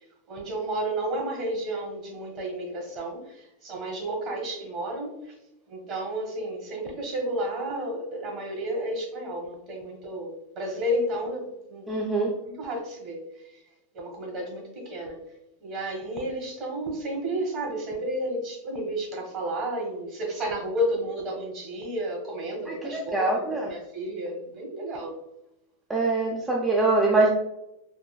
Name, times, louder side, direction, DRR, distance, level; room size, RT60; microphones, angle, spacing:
voice 1, 0.3-5.3 5.7-11.9 12.5-13.6 13.9-15.2 15.6-25.1, right 1 dB, 45° right, 1 dB, 1.3 m, -32 dB
voice 2, 11.9-12.3 22.7-23.7 25.9-27.3, right 2 dB, 15° right, -3 dB, 0.5 m, -24 dB
3.8 x 2.5 x 2.2 m, 0.87 s
hypercardioid pair, 125°, 0 cm